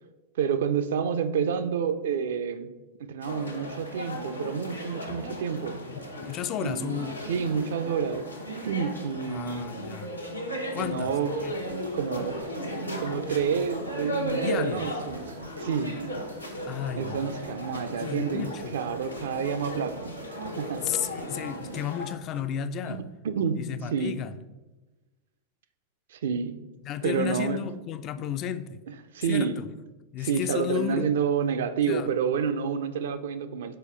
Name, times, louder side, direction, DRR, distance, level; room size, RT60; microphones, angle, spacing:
voice 1, 0.4-2.7 3.0-5.8 6.6-9.8 10.8-11.3 11.9-12.5 13.0-15.3 15.6-16.0 17.0-20.1 20.6-20.9 22.8-24.2 26.1-26.6 27.0-27.7 28.9-29.6 30.2-33.8, right 6 dB, 60° right, 0.4 m, -29 dB
sound 1, 3.2-22.1, equal, 85° left, 0.8 m, -36 dB
voice 2, 5.9-7.3 9.3-10.1 10.7-11.5 14.3-14.9 16.7-17.2 17.9-18.8 20.7-23.0 23.6-24.4 26.8-28.8 29.3-29.7 30.1-31.1 31.9-32.1, left 9 dB, 35° left, 0.3 m, -33 dB
sound 2, 10.8-23.0 23.3-23.6, right 1 dB, 80° right, 0.9 m, -47 dB
6.8 x 4.7 x 3.2 m
figure-of-eight pair, 90°, 0 cm